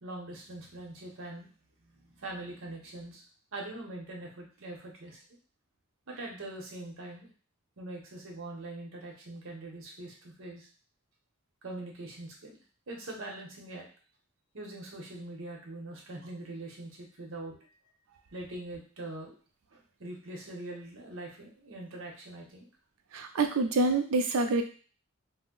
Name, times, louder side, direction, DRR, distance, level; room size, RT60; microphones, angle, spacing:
voice 1, 0.0-1.5 2.0-3.2 3.5-5.2 6.1-7.3 7.8-10.7 11.6-12.6 12.9-13.9 14.5-17.6 18.3-19.4 19.7-22.7, right 2 dB, 70° right, -1 dB, 0.9 m, -42 dB
voice 2, 23.1-24.6, right 3 dB, 85° right, 6 dB, 0.5 m, -26 dB
2.6 x 2.1 x 3.7 m, 0.40 s
head